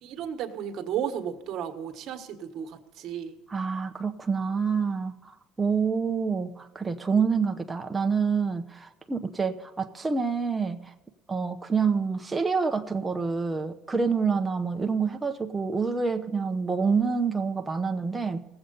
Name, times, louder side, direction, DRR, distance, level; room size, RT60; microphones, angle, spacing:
voice 1, 0.0-3.3, right 9 dB, 55° right, 6 dB, 1.4 m, -34 dB
voice 2, 3.5-5.2 5.6-10.8 11.3-18.4, right 5 dB, 15° right, 5 dB, 0.8 m, -27 dB
18.0 x 7.8 x 5.4 m, 1.1 s
cardioid pair, 120°, 0 cm